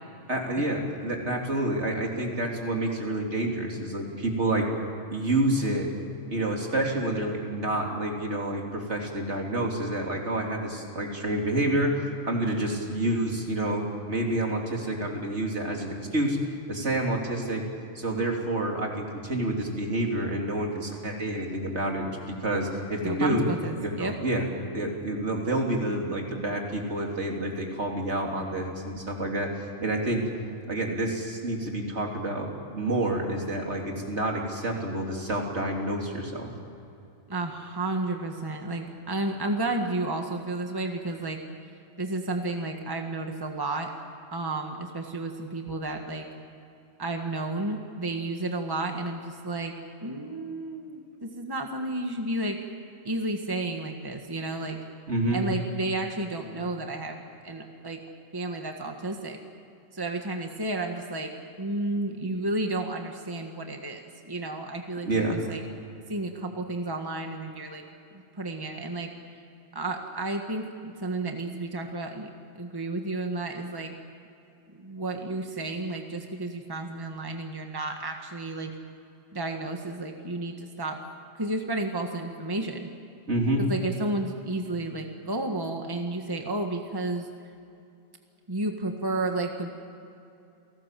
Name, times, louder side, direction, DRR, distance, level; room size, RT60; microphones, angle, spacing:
voice 1, 0.3-4.7 5.1-5.9 6.3-16.4 16.7-17.6 18.0-23.4 23.8-24.5 24.7-30.2 30.7-36.5 55.1-55.4 65.0-65.4 83.3-83.6, right 1 dB, 65° right, 0 dB, 3.7 m, -28 dB
voice 2, 23.0-24.1 37.3-41.4 42.0-43.9 44.3-46.3 47.0-49.7 50.0-52.6 53.0-54.8 55.3-58.0 58.3-59.4 59.9-61.3 61.6-65.6 66.1-67.8 68.1-69.1 69.7-72.3 72.5-73.9 74.8-78.7 79.3-81.0 81.4-82.9 83.6-87.3 88.5-89.7, right 2 dB, 20° right, 3 dB, 1.7 m, -32 dB
29.0 x 18.5 x 7.6 m, 2.7 s
omnidirectional pair, 1.3 m